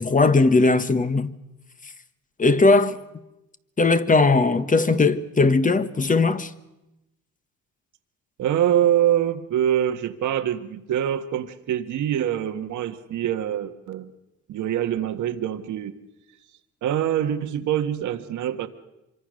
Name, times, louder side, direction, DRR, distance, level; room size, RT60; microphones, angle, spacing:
voice 1, 0.0-1.3 2.4-3.0 3.8-6.5, left 3 dB, 25° left, 1.3 m, -19 dB
voice 2, 8.4-14.1 14.5-16.0 16.8-18.7, right 10 dB, 75° right, 1.6 m, -24 dB
25.5 x 23.5 x 6.5 m
cardioid pair, 90°, 30 cm